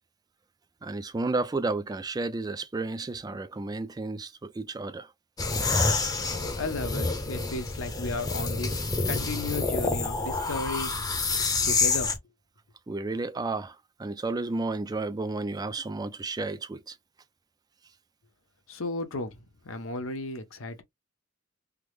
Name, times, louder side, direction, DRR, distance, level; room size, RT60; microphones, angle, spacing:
voice 1, 0.8-5.1 12.9-17.0, right 3 dB, 20° right, 0.3 m, -32 dB
sound 1, 5.4-12.2, left 3 dB, 20° left, 0.6 m, -28 dB
voice 2, 6.6-8.8 9.1-10.9 11.6-12.1 18.7-19.4 19.6-20.8, left 2 dB, 80° left, 0.8 m, -34 dB
3.5 x 2.0 x 3.1 m
head